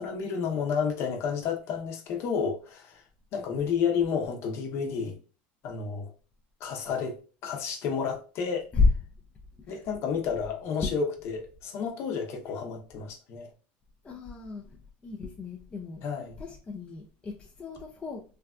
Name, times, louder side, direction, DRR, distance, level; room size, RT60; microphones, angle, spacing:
voice 1, 0.0-3.0 3.3-5.2 5.6-6.1 6.6-7.1 7.4-8.7 9.7-13.5 16.0-16.4, left 6 dB, 50° left, 0.7 m, -31 dB
voice 2, 14.0-16.0 16.4-18.2, left 4 dB, 20° left, 0.4 m, -30 dB
3.2 x 2.3 x 2.3 m
supercardioid pair, 130°, 6 cm